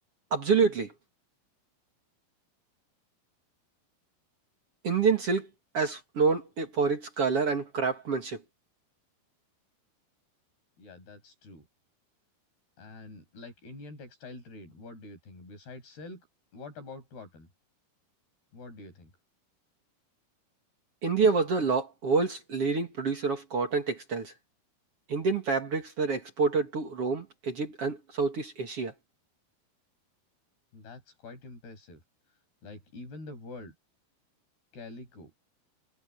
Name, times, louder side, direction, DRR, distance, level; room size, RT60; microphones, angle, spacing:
voice 1, 0.3-0.9 4.8-5.5 5.7-8.4 21.0-24.3 25.1-28.9, right 4 dB, 45° right, 2.6 m, -27 dB
voice 2, 10.8-11.7 12.8-16.2 16.5-17.5 18.5-19.1 30.7-32.0 32.6-33.7 34.7-35.3, left 2 dB, 85° left, 9.3 m, -46 dB
omnidirectional pair, 4.4 m